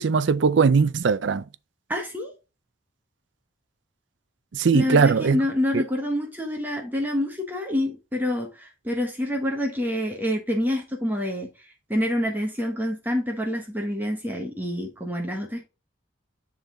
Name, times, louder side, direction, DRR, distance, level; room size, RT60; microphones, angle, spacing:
voice 1, 0.0-1.4 4.5-5.4 5.7-5.8, right 5 dB, 75° right, 0.5 m, -20 dB
voice 2, 1.9-2.3 4.7-15.6, left 1 dB, 10° right, 1.3 m, -27 dB
10.0 x 3.9 x 3.9 m
head